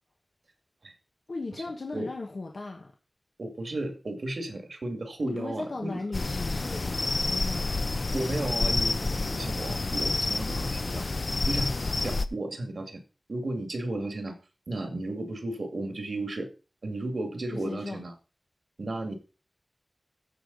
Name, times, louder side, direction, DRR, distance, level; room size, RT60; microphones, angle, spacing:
voice 1, 1.3-2.9 5.2-7.8 17.5-18.1, left 3 dB, 80° left, 1.4 m, -37 dB
voice 2, 3.4-6.0 8.1-11.1 11.4-11.7 12.0-13.0 13.3-14.4 14.7-16.5 16.8-18.1 18.8-19.1, right 2 dB, 80° right, 2.1 m, -34 dB
Parlyu Crickets in the Distance - Night Air, 6.1-12.3, left 3 dB, 65° left, 0.7 m, -29 dB
15.0 x 5.0 x 4.0 m
wide cardioid pair, 45°, 0 cm